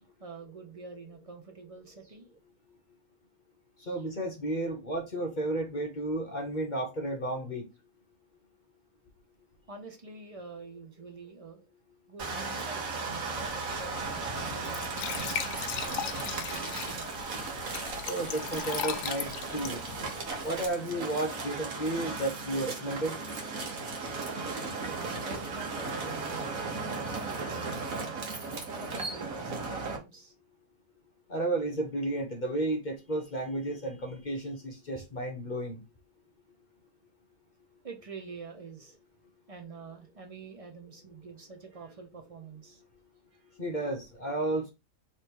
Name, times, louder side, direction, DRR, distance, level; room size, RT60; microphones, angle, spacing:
voice 1, 0.0-2.3 3.8-4.0 9.7-11.6 12.1-15.3 15.8-17.5 24.9-28.2 28.7-30.3 37.8-39.0 39.5-42.8 43.3-43.6, right 4 dB, 40° right, 0.5 m, -47 dB
voice 2, 3.9-7.7 18.1-19.8 20.4-23.2 31.3-35.8 43.6-44.7, right 2 dB, 40° left, 0.8 m, -32 dB
sound 1, 12.2-30.0, right 4 dB, 60° right, 1.5 m, -36 dB
Glass / Trickle dribble / Fill (with liquid), 13.3-20.7, left 10 dB, 85° left, 1.1 m, -39 dB
3.3 x 3.3 x 4.4 m
omnidirectional pair, 1.7 m